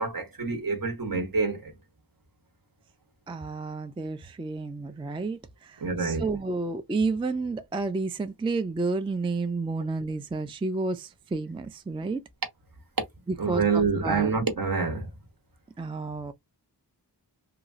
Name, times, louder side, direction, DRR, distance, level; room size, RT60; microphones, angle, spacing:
voice 1, 0.0-1.7 5.8-6.3 13.4-15.1, right 4 dB, 55° right, 1.0 m, -27 dB
voice 2, 3.3-12.2 13.5-14.3 15.8-16.3, right 3 dB, 15° right, 0.3 m, -31 dB
3.0 x 2.3 x 2.5 m
wide cardioid pair, 45°, 41 cm